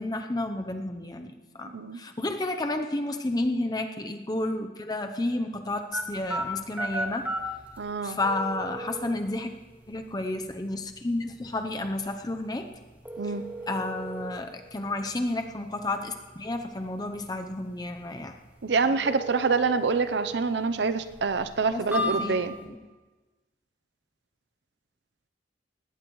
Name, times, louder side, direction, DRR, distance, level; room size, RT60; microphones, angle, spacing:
voice 1, 0.0-7.3 8.0-9.5 9.9-12.7 13.7-18.3 21.7-22.4 22.6-22.8, left 2 dB, 20° left, 6 dB, 0.7 m, -31 dB
sound 1, 5.9-22.6, equal, 10° right, 2.0 m, -38 dB
voice 2, 7.8-8.2 13.2-13.5 18.6-22.6, right 4 dB, 70° right, 12 dB, 0.6 m, -26 dB
20.0 x 16.5 x 3.1 m, 1.3 s
head